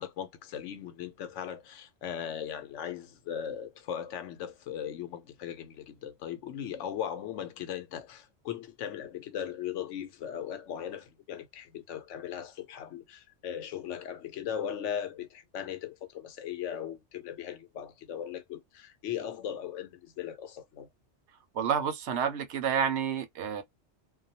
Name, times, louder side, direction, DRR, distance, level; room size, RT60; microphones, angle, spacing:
voice 1, 0.0-20.9, left 9 dB, 85° left, 0.9 m, -38 dB
voice 2, 21.5-23.6, right 7 dB, 70° right, 0.9 m, -29 dB
2.3 x 2.2 x 2.7 m
omnidirectional pair, 1.2 m